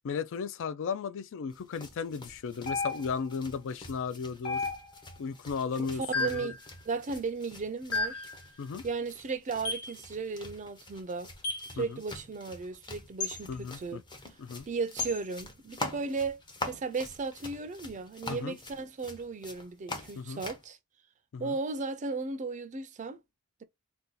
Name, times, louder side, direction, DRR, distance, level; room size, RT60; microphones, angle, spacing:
voice 1, 0.0-4.6 5.2-6.5 8.6-8.8 11.8-12.0 13.5-14.0 14.4-14.7 18.3-18.6 20.2-20.4 21.3-21.6, left 6 dB, 65° left, 0.4 m, -35 dB
sound 1, 1.5-20.7, left 2 dB, 20° left, 0.7 m, -45 dB
sound 2, 2.7-3.3 4.4-5.1 6.1-6.5 7.9-8.3 9.6-9.9 11.4-11.7 13.2-13.4 15.0-15.2, left 3 dB, 80° left, 1.4 m, -33 dB
voice 2, 6.2-6.6 6.9-8.3 8.8-11.3 11.7-14.0 14.7-16.4 16.7-20.8 21.4-23.2, right 4 dB, 35° right, 0.4 m, -35 dB
2.7 x 2.2 x 3.7 m
head